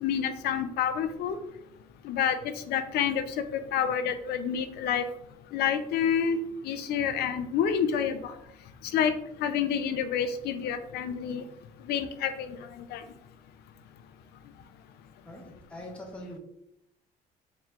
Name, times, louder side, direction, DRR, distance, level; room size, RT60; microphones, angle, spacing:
voice 1, 0.0-1.4 2.0-2.3 2.7-3.2 3.5-5.0 5.5-6.4 6.6-8.3 8.9-9.1 9.4-11.4 11.9-12.5 12.9-13.0, left 8 dB, 70° left, 10 dB, 0.5 m, -28 dB
voice 2, 15.2-16.4, left 1 dB, 5° left, -1 dB, 0.7 m, -43 dB
4.4 x 3.3 x 2.4 m, 0.79 s
cardioid pair, 110°, 17 cm